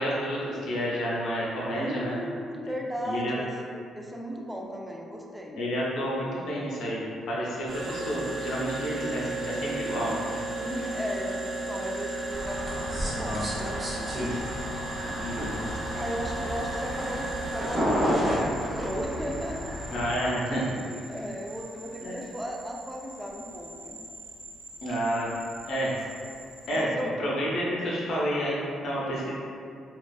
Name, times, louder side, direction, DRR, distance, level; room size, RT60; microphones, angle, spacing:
voice 1, 0.0-2.2 3.0-3.3 5.5-10.4 15.2-15.6 19.9-20.7 22.0-22.1 24.8-25.3 25.6-25.9 26.7-29.3, equal, 70° left, -5 dB, 0.6 m, -30 dB
voice 2, 1.7-5.6 10.5-14.4 15.0-15.3 15.9-19.7 20.8-24.0 25.7-25.8 26.7-27.2, equal, 5° right, -1 dB, 0.3 m, -36 dB
sound 1, 7.7-26.8, right 2 dB, 60° right, 0.9 m, -37 dB
sound 2, 12.3-20.1, equal, 30° right, 0.7 m, -31 dB
2.4 x 2.3 x 2.2 m, 2.4 s
cardioid pair, 90°, 0 cm